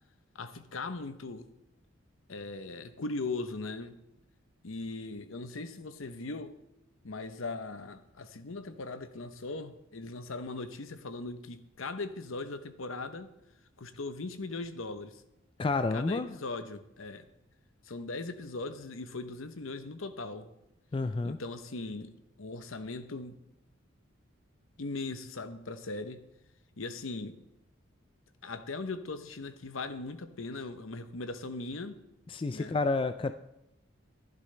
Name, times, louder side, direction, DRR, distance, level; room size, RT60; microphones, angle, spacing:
voice 1, 0.3-1.5 2.3-4.0 4.6-6.5 7.0-13.3 13.8-15.2 15.9-17.3 17.8-20.5 21.2-22.1 22.4-23.4 24.8-26.2 26.8-27.4 28.4-32.0 32.5-32.8, left 3 dB, 75° left, 10 dB, 0.9 m, -39 dB
voice 2, 15.6-16.3 20.9-21.4 32.3-33.3, left 3 dB, 25° left, 10 dB, 0.3 m, -29 dB
15.0 x 11.5 x 3.3 m, 0.85 s
head